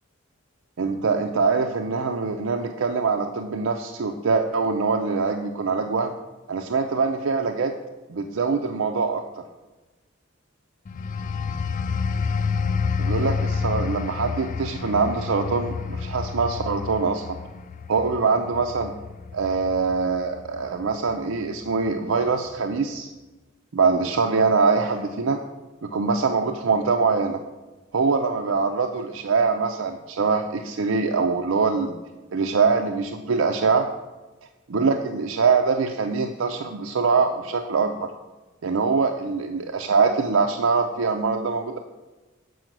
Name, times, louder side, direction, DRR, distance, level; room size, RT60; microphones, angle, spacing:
voice 1, 0.8-6.1 6.5-7.7 8.1-9.2 13.0-17.4 17.9-18.9 19.3-23.1 23.7-25.4 25.8-27.4 27.9-31.9 32.3-33.9 34.7-38.1 38.6-41.8, right 4 dB, 90° right, 4 dB, 0.5 m, -23 dB
sound 1, 10.9-21.2 21.6-21.9, left 5 dB, 40° left, 0.3 m, -29 dB
7.7 x 4.9 x 6.0 m, 1.2 s
head